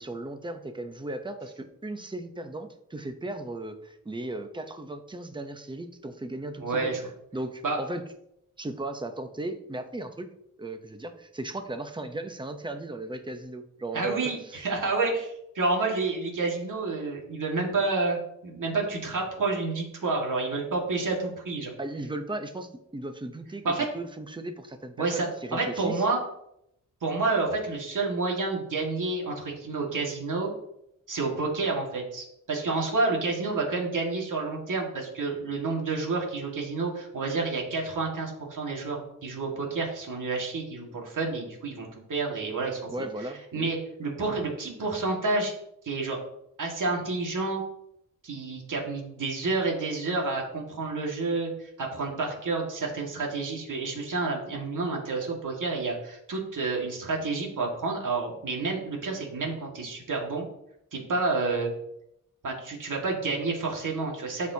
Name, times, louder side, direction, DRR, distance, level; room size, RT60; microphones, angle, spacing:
voice 1, 0.0-8.1 8.6-10.3 10.6-14.7 21.8-26.0 42.9-43.7, right 2 dB, 15° right, 7 dB, 0.7 m, -36 dB
voice 2, 6.6-7.0 7.6-7.8 13.9-21.7 23.6-23.8 25.0-26.2 27.0-30.5 31.1-42.9 43.5-45.5 45.8-46.2 46.6-47.6 48.2-60.5 60.9-61.7 62.4-64.5, right 3 dB, 70° right, -1 dB, 1.9 m, -29 dB
13.0 x 4.3 x 2.8 m, 0.78 s
wide cardioid pair, 100°, 33 cm